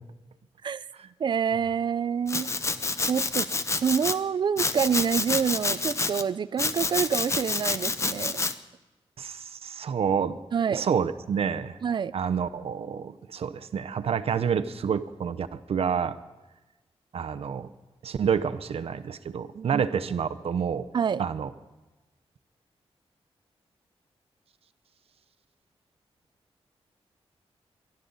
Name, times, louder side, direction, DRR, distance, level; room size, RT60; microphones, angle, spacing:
voice 1, 1.2-2.5 3.0-3.5 3.8-8.4 10.5-10.8 11.8-12.1 19.5-19.8 20.9-21.2, right 7 dB, 45° right, 17 dB, 0.4 m, -27 dB
Domestic sounds home sounds, 2.3-4.2 4.6-6.2 6.6-8.5, left 3 dB, 25° left, 0.7 m, -28 dB
voice 2, 9.2-10.4 10.7-11.8 12.1-16.2 17.1-17.7 18.0-20.9 21.2-21.5, right 7 dB, 70° right, 12 dB, 0.8 m, -28 dB
24.0 x 12.0 x 4.0 m, 1.1 s
wide cardioid pair, 160°, 11 cm